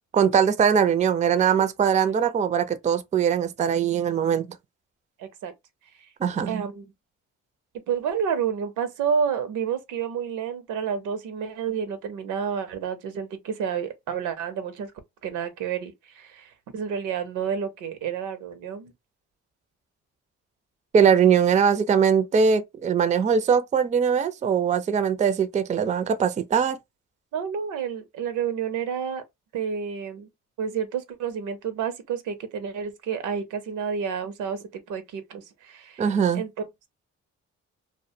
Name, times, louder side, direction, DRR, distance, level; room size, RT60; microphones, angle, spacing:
voice 1, 0.1-4.5 6.2-6.7 20.9-26.8 36.0-36.4, right 7 dB, 25° right, 0.3 m, -21 dB
voice 2, 5.2-5.5 6.0-6.1 6.5-6.9 7.9-14.9 15.2-18.9 27.3-29.2 29.5-30.3 30.6-34.6 34.9-36.0 36.3-36.6, right 7 dB, 85° right, 0.6 m, -30 dB
2.3 x 2.1 x 2.6 m
cardioid pair, 90°, 30 cm